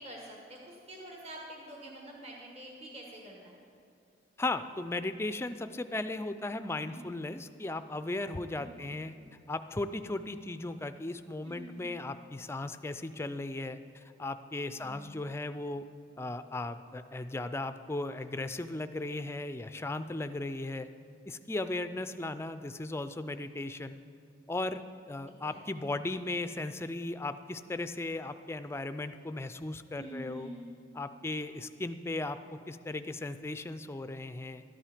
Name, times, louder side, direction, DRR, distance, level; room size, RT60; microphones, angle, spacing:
voice 1, 0.0-3.6 6.8-7.2 8.6-8.9 11.4-12.0 14.7-15.3 25.5-25.6 30.0-30.7, right 1 dB, 35° right, -1 dB, 1.3 m, -47 dB
voice 2, 4.4-9.1 9.5-15.8 16.2-20.9 21.3-24.0 24.5-24.8 25.1-30.5 30.9-34.6, left 2 dB, 15° left, 11 dB, 0.3 m, -36 dB
12.5 x 10.5 x 5.0 m, 2.4 s
head